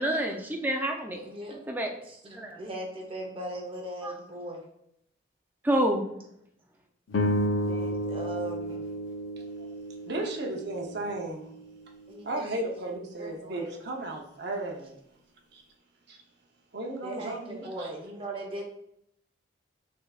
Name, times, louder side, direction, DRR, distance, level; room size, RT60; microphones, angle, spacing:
voice 1, 0.0-1.2 1.7-1.9 2.3-2.6 4.0-4.1 5.6-6.0, right 1 dB, 10° right, 1 dB, 0.5 m, -27 dB
voice 2, 1.1-1.6 2.0-4.6 7.7-8.8 12.1-12.5 12.9-13.7 17.0-18.6, right 1 dB, 30° right, 0 dB, 0.8 m, -39 dB
sound 1, 7.1-11.6, equal, 85° left, 0.6 m, -32 dB
voice 3, 10.1-11.5 12.2-15.0 15.5-15.6 16.1-16.2 16.7-17.9, right 2 dB, 55° right, 1 dB, 0.8 m, -35 dB
6.2 x 3.4 x 2.4 m, 0.75 s
head